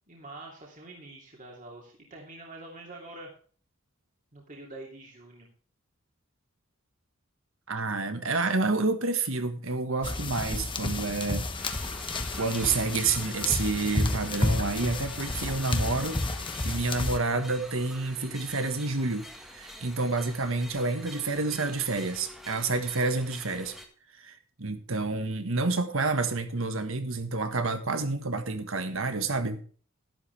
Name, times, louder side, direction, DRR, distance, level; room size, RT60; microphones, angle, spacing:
voice 1, 0.1-3.3 4.3-5.5, right 2 dB, 40° right, 2.9 m, -45 dB
voice 2, 7.7-11.4 12.4-16.2 16.6-23.8 24.2-29.6, right 3 dB, 70° right, 1.6 m, -29 dB
sound 1, 10.0-17.2, left 2 dB, 25° left, 1.1 m, -31 dB
sound 2, 11.6-23.9, equal, ahead, 1.7 m, -46 dB
12.0 x 12.0 x 3.4 m
head